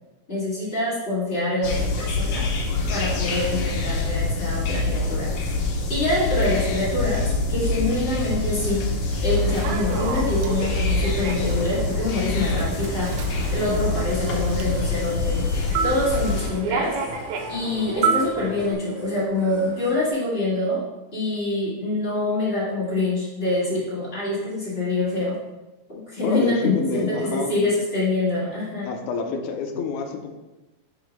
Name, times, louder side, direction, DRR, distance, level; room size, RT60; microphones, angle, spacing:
voice 1, 0.3-2.5 2.9-5.3 5.9-8.8 9.2-13.1 13.5-15.4 15.8-16.9 17.5-20.8 21.1-25.3 25.9-28.9, left 2 dB, 25° left, -8 dB, 1.5 m, -25 dB
sound 1, 1.6-16.5, left 3 dB, 65° left, 1.8 m, -25 dB
Human voice / Subway metro underground, 9.3-18.7, right 5 dB, 80° right, 1.8 m, -30 dB
sound 2, 12.5-20.1, equal, 10° right, 0.8 m, -45 dB
voice 2, 26.2-27.5 28.8-30.3, left 5 dB, 80° left, 4 dB, 1.7 m, -28 dB
5.0 x 4.7 x 5.2 m, 1.1 s
omnidirectional pair, 4.2 m